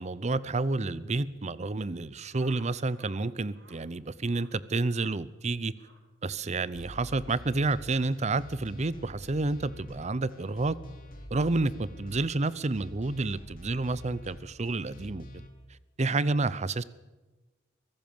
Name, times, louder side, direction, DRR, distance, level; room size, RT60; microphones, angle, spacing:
voice 1, 0.0-5.7 6.2-10.8 11.3-15.5 16.0-16.8, right 3 dB, 35° right, 19 dB, 0.7 m, -30 dB
sound 1, 2.3-3.2 3.5-3.8 4.2-4.5 4.9-5.1 5.7-6.0 6.7-6.9 7.8-8.1, right 3 dB, 65° right, 3.9 m, -56 dB
sound 2, 6.7-15.5, equal, 50° left, 3.0 m, -46 dB
23.5 x 16.0 x 7.2 m, 1.2 s
head